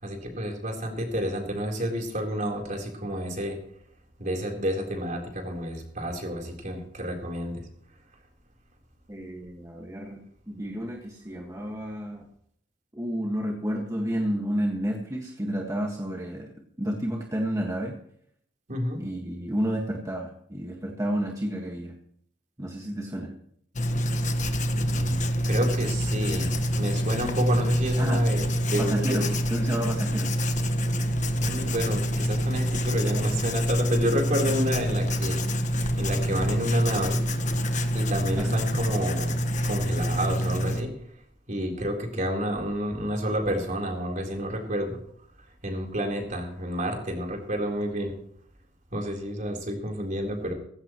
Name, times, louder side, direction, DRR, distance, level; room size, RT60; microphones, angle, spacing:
voice 1, 0.0-3.6 4.2-7.7 18.7-19.0 24.7-26.5 26.7-29.3 31.4-35.4 36.0-37.2 37.9-39.4 39.6-40.9 41.5-45.0 45.6-48.1 48.9-50.5, equal, 45° right, 1 dB, 3.8 m, -29 dB
voice 2, 9.1-10.2 10.5-12.3 12.9-18.0 19.0-21.9 22.6-23.3 28.0-28.2 28.8-30.3 38.4-38.6, equal, 20° right, 0 dB, 1.7 m, -31 dB
Writing, 23.8-40.8, equal, 40° left, 1.4 m, -26 dB
17.5 x 15.5 x 3.1 m, 0.65 s
head